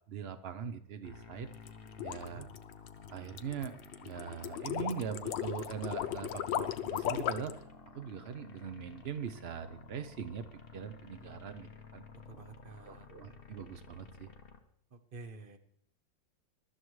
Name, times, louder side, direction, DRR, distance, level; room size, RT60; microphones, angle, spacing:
voice 1, 0.1-1.5 2.0-2.5 3.1-7.7 7.9-12.0 12.9-14.3, right 7 dB, 90° right, 10 dB, 0.5 m, -41 dB
sound 1, 1.0-14.6, left 5 dB, 35° left, 1.1 m, -53 dB
sound 2, 1.5-7.6, left 11 dB, 75° left, 1.4 m, -36 dB
voice 2, 12.2-13.1 14.9-15.6, right 3 dB, 40° right, 8 dB, 0.8 m, -49 dB
22.5 x 12.5 x 3.2 m, 0.66 s
omnidirectional pair, 2.0 m